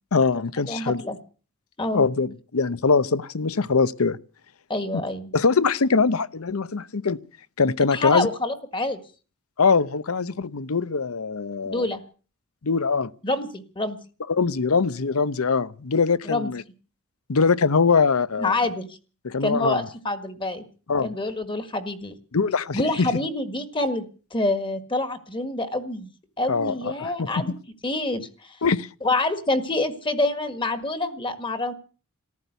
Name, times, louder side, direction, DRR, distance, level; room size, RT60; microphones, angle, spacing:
voice 1, 0.1-1.0 1.9-4.2 4.9-5.0 5.3-7.2 7.6-8.3 9.6-11.9 12.6-13.1 14.3-16.6 17.3-18.6 19.2-19.9 20.9-21.1 22.3-23.1 26.5-27.4 28.6-28.9, left 4 dB, 80° left, 0.8 m, -22 dB
voice 2, 0.7-1.2 1.8-2.1 4.7-5.3 7.9-9.0 11.7-12.0 13.2-14.0 16.3-16.5 18.4-18.9 19.4-20.6 21.0-22.2 22.7-24.1 24.3-26.1 26.4-27.5 27.8-28.6 29.0-31.7, left 2 dB, 25° left, 1.7 m, -27 dB
14.5 x 12.5 x 8.1 m
head